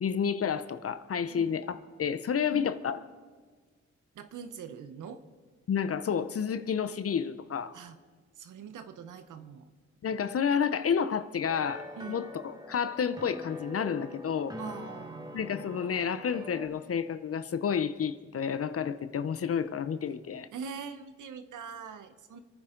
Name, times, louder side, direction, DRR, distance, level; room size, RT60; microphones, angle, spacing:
voice 1, 0.0-3.0 5.7-7.8 10.0-14.5 15.3-20.5, left 7 dB, 50° left, 0.7 m, -30 dB
voice 2, 4.1-5.2 7.7-8.0 8.4-9.7 12.0-12.2 14.6-15.4 20.5-22.4, right 6 dB, 90° right, 1.0 m, -43 dB
sound 1, 11.5-16.7, left 1 dB, 15° right, 1.4 m, -44 dB
26.5 x 9.7 x 3.8 m
cardioid pair, 80°, 30 cm